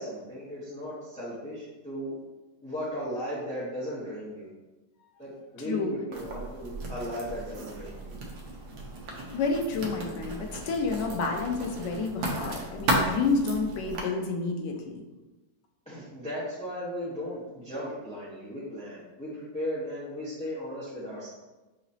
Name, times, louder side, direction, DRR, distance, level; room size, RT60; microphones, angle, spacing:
voice 1, 0.0-2.2 2.6-4.5 5.2-8.2 15.9-21.3, equal, 5° left, -10 dB, 0.9 m, -36 dB
voice 2, 5.6-5.9 9.3-15.0, left 4 dB, 90° left, 3 dB, 1.3 m, -29 dB
Writing, 6.1-14.0, right 1 dB, 65° right, 1.2 m, -34 dB
6.0 x 2.9 x 2.7 m, 1.1 s
omnidirectional pair, 1.9 m